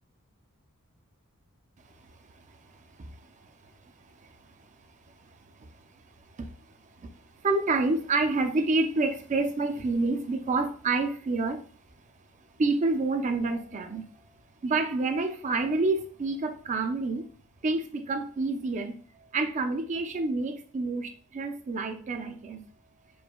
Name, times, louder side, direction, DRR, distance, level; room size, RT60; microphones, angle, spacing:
voice 1, 2.0-4.8 5.1-11.6 12.6-14.1 14.6-17.3 17.6-19.0 19.3-22.6, right 3 dB, 35° right, 6 dB, 0.4 m, -29 dB
4.6 x 2.1 x 2.2 m, 0.43 s
head